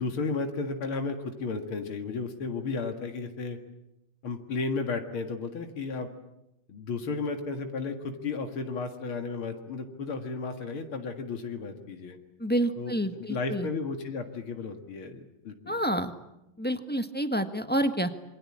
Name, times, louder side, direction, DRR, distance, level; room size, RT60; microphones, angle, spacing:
voice 1, 0.0-3.6 4.2-6.1 6.7-12.2 12.8-16.0, left 4 dB, 85° left, 5 dB, 2.8 m, -34 dB
voice 2, 12.4-13.7 15.7-16.1 16.6-18.1, right 1 dB, 5° left, 8 dB, 1.2 m, -28 dB
27.0 x 23.5 x 8.7 m, 0.88 s
omnidirectional pair, 2.3 m